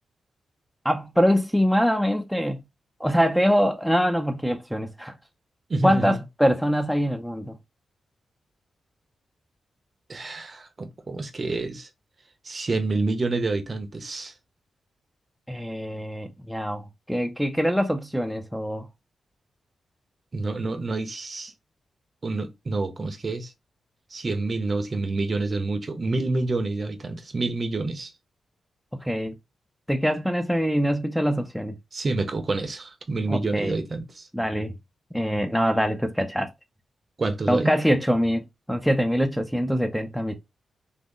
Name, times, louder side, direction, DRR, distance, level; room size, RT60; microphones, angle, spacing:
voice 1, 0.8-2.6 3.0-5.1 5.8-7.6 15.5-18.9 28.9-29.4 29.9-31.7 33.3-33.8 34.3-34.8 35.1-36.5 37.5-40.3, equal, ahead, 0.4 m, -24 dB
voice 2, 5.7-6.2 10.1-11.9 12.4-14.3 20.3-21.5 22.2-23.5 24.1-28.1 31.9-34.3 37.2-37.7, right 3 dB, 40° right, 0.7 m, -28 dB
3.6 x 2.0 x 3.7 m
cardioid pair, 100°, 0 cm